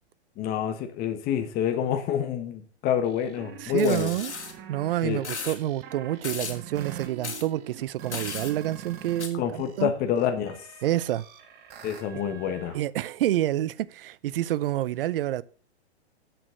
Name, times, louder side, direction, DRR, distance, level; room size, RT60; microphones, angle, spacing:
voice 1, 0.4-4.1 5.0-5.2 9.3-10.6 11.8-12.8, left 9 dB, 30° left, 1.5 m, -27 dB
sound 1, 3.0-9.2 9.5-12.8, right 9 dB, 30° right, 1.5 m, -44 dB
voice 2, 3.6-4.3 4.7-9.9 10.8-11.2 12.7-15.4, right 13 dB, 55° right, 0.6 m, -28 dB
sound 2, 3.8-4.5 5.2-5.6 6.2-6.6 7.2-7.4 8.1-8.5 9.2-9.3, left 5 dB, 85° left, 2.4 m, -35 dB
8.0 x 6.2 x 7.7 m
hypercardioid pair, 130°, 33 cm